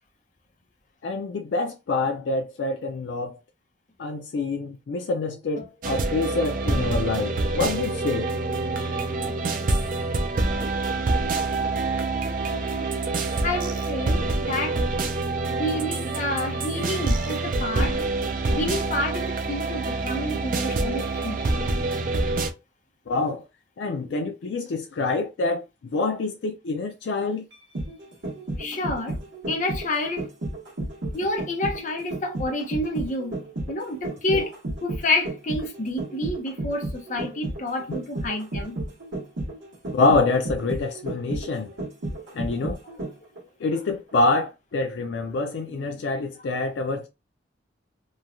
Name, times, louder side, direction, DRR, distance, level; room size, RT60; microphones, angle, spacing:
voice 1, 1.0-3.4 4.0-8.3 23.1-23.4 23.8-25.6 25.9-27.4 34.3-34.4 39.9-41.7 42.3-42.8 43.6-47.1, left 3 dB, 80° left, 0.4 m, -26 dB
sound 1, 5.8-22.5, right 3 dB, 50° right, 0.4 m, -26 dB
voice 2, 12.3-12.9 13.4-14.8 15.6-18.0 18.6-21.4 28.6-29.2 29.5-30.3 31.1-33.4 33.7-38.7, left 1 dB, 45° left, 0.7 m, -29 dB
sound 2, 27.5-43.4 43.7-43.8, right 1 dB, 85° right, 1.2 m, -33 dB
3.0 x 2.2 x 2.5 m
head